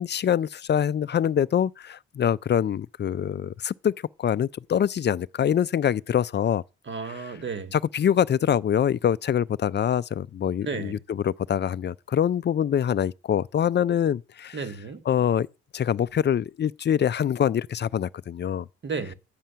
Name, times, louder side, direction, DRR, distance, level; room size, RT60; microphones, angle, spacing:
voice 1, 0.0-3.9 4.2-6.6 7.1-7.4 7.7-14.6 15.1-15.5 15.7-18.7, left 9 dB, 35° left, 0.4 m, -24 dB
voice 2, 6.9-7.7 10.6-11.0 14.5-15.0 18.8-19.1, right 5 dB, 40° right, 1.5 m, -33 dB
10.5 x 7.5 x 5.7 m
cardioid pair, 90°, 30 cm